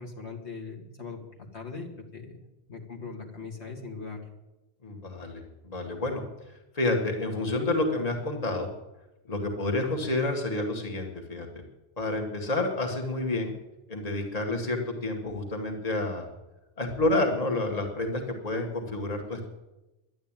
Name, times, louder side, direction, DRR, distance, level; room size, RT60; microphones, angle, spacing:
voice 1, 0.0-2.4 2.7-4.2, left 4 dB, 70° left, 0 dB, 2.3 m, -40 dB
voice 2, 4.8-6.2 6.7-8.7 9.3-11.5 12.0-13.5 13.9-16.3 16.8-19.5, left 2 dB, 35° left, 3 dB, 1.9 m, -29 dB
12.0 x 11.0 x 9.0 m, 0.99 s
omnidirectional pair, 1.2 m